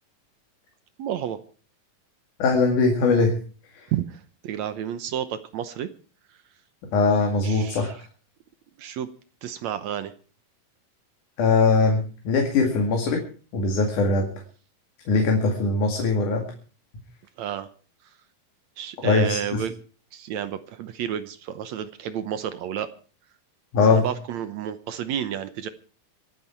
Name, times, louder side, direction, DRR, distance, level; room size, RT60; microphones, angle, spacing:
voice 1, 1.0-1.4 3.9-5.9 7.4-7.9 8.8-9.1 9.4-10.1 17.4-17.7 18.8-19.7 20.1-22.9 23.9-25.7, right 10 dB, 70° right, 12 dB, 1.9 m, -31 dB
voice 2, 2.4-3.4 6.9-8.0 11.4-13.2 13.5-14.3 15.1-16.4 19.0-19.6 23.7-24.0, left 3 dB, 65° left, 2 dB, 3.7 m, -21 dB
25.5 x 9.4 x 4.6 m, 0.39 s
omnidirectional pair, 3.9 m